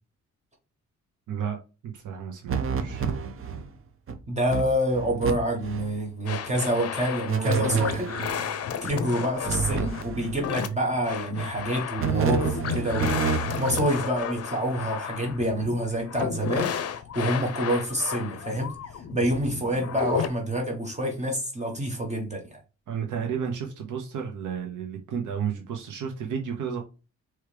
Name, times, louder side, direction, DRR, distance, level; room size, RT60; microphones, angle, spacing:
voice 1, 1.3-1.6 1.9-3.0 19.4-19.6 22.9-26.8, right 7 dB, 85° right, 0.9 m, -32 dB
sound 1, 2.5-3.7 4.1-4.2 4.5-5.3 5.6-5.9 7.3-8.4 9.4-10.4 12.0-13.9, right 6 dB, 45° right, 0.7 m, -28 dB
voice 2, 4.3-8.1 8.8-16.7 17.1-22.6, equal, 25° right, 1.2 m, -27 dB
sound 2, 6.3-20.3, left 7 dB, 55° left, 0.6 m, -33 dB
4.7 x 3.1 x 3.4 m
wide cardioid pair, 140°, 30 cm